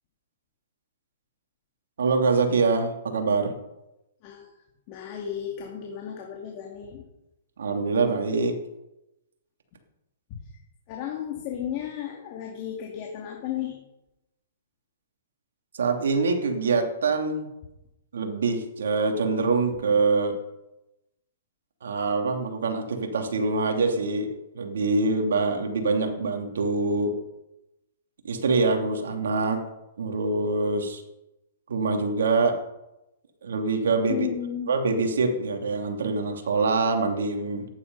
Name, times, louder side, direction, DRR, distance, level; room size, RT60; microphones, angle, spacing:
voice 1, 2.0-3.5 7.6-8.6 15.7-17.5 18.1-20.4 21.8-24.3 24.5-27.2 28.2-29.6 30.0-31.0 31.7-32.6 33.4-34.3 34.7-37.7, right 3 dB, 75° right, 3 dB, 2.8 m, -24 dB
voice 2, 4.9-7.0 10.3-10.4 10.9-13.8 34.1-34.7, left 10 dB, 40° left, 0 dB, 2.4 m, -34 dB
14.0 x 10.5 x 5.5 m, 0.93 s
hypercardioid pair, 130°, 0 cm